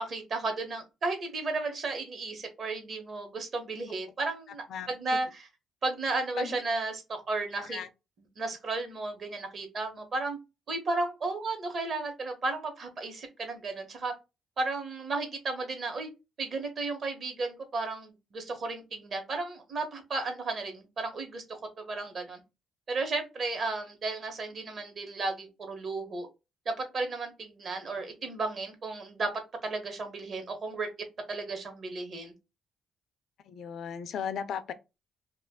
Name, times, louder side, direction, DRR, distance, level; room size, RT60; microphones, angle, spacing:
voice 1, 0.0-5.5 5.8-7.8 8.4-10.4 10.7-14.1 14.6-16.1 16.4-22.4 22.9-26.3 26.6-29.3 29.6-30.9 31.3-32.3, right 3 dB, 50° right, 1.0 m, -34 dB
voice 2, 33.5-34.7, left 7 dB, 70° left, 0.4 m, -35 dB
2.4 x 2.3 x 3.5 m
cardioid pair, 90°, 0 cm